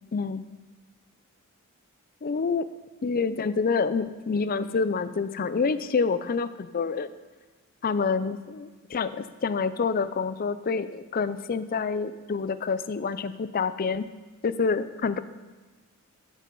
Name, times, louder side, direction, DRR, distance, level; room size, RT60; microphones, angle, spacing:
voice 1, 0.1-0.4 2.2-2.7 3.0-7.1 7.8-14.1 14.4-15.2, left 5 dB, 40° left, 14 dB, 0.4 m, -27 dB
13.5 x 5.4 x 5.3 m, 1.3 s
head